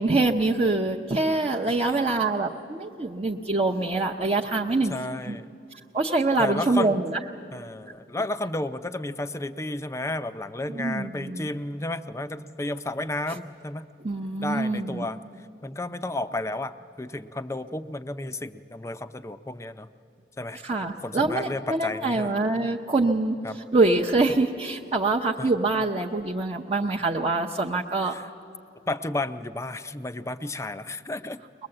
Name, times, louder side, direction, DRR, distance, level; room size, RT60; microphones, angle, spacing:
voice 1, 0.0-4.9 5.3-5.4 5.9-7.2 10.7-11.5 14.0-15.1 20.6-23.4 23.7-28.1, right 2 dB, 35° right, 0 dB, 0.7 m, -25 dB
voice 2, 4.9-5.5 6.4-7.0 7.5-13.9 14.4-15.2 15.6-19.9 20.4-20.6 21.0-22.3 23.4-23.6 25.4-25.5 28.0-28.3 28.9-31.7, left 2 dB, 15° left, 11 dB, 0.5 m, -32 dB
22.0 x 20.5 x 7.8 m, 2.7 s
head